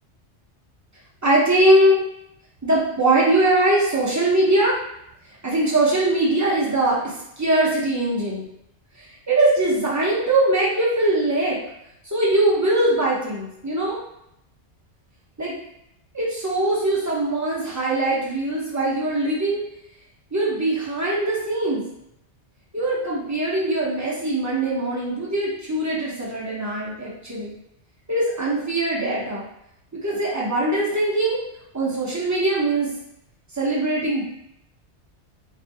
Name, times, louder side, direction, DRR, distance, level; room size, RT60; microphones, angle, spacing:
voice 1, 1.2-2.0 2.6-4.8 5.4-8.4 9.3-11.6 12.1-14.0 15.4-15.5 16.1-19.6 20.3-21.8 22.7-27.5 28.1-29.4 29.9-31.4 31.7-32.9 33.5-34.2, right 1 dB, 30° right, -6 dB, 0.3 m, -21 dB
2.4 x 2.1 x 2.6 m, 0.78 s
omnidirectional pair, 1.2 m